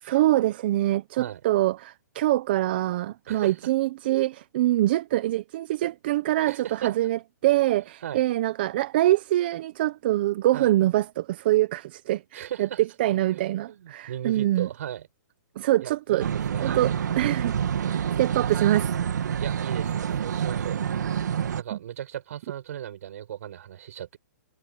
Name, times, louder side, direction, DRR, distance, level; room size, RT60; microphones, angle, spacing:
voice 1, 0.0-14.7 15.6-16.3 16.6-18.9 21.7-21.8, right 15 dB, 30° right, 0.6 m, -24 dB
voice 2, 6.5-6.9 8.0-8.2 10.5-10.7 12.3-12.8 13.3-15.1 15.8-16.9 19.4-20.8 21.5-24.2, right 10 dB, 50° right, 5.4 m, -37 dB
sound 1, 16.2-21.6, right 8 dB, 65° right, 1.9 m, -27 dB
hypercardioid pair, 170°, 10 cm